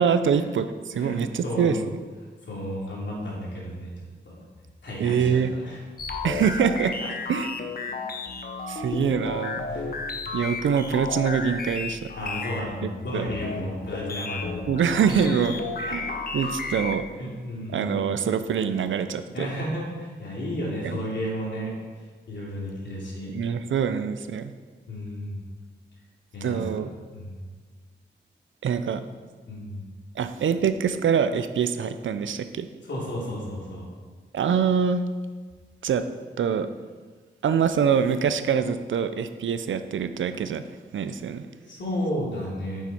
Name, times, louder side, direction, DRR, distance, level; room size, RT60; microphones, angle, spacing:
voice 1, 0.0-1.8 5.0-5.5 6.2-6.9 7.3-7.5 8.7-9.7 10.3-12.1 12.8-13.2 14.7-16.0 16.3-17.1 17.7-19.5 20.8-21.0 23.3-24.5 26.4-26.9 28.6-29.0 30.2-32.7 34.3-35.0 35.8-36.0 36.4-36.7 37.4-40.6 40.9-41.5, right 7 dB, 85° right, 11 dB, 0.5 m, -24 dB
voice 2, 0.9-1.8 2.5-3.9 4.2-4.4 4.8-5.8 7.9-8.0 9.7-9.9 12.1-15.4 15.9-16.7 17.2-18.1 19.3-21.7 22.3-23.3 24.9-25.4 26.3-27.5 29.5-29.9 32.8-33.9 41.7-42.8, equal, 70° left, -4 dB, 2.9 m, -33 dB
sound 1, 6.0-17.1, left 4 dB, 50° left, 0.7 m, -33 dB
9.4 x 7.3 x 4.4 m, 1.5 s
wide cardioid pair, 150°, 19 cm